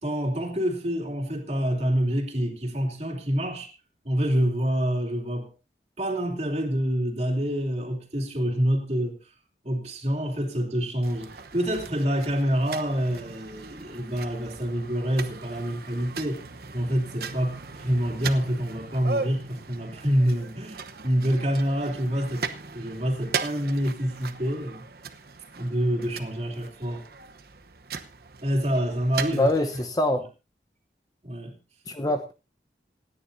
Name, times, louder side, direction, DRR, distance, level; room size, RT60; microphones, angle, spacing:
voice 1, 0.0-3.7 4.0-5.5 6.0-9.2 9.6-16.4 16.7-22.5 22.7-24.8 25.5-27.1 28.4-29.5 31.2-31.5, equal, 40° right, 3.0 m, -27 dB
sound 1, 11.0-29.9, right 5 dB, 60° right, 1.0 m, -38 dB
voice 2, 29.3-30.3 31.9-32.3, left 1 dB, 20° left, 0.9 m, -24 dB
27.0 x 10.0 x 2.7 m
head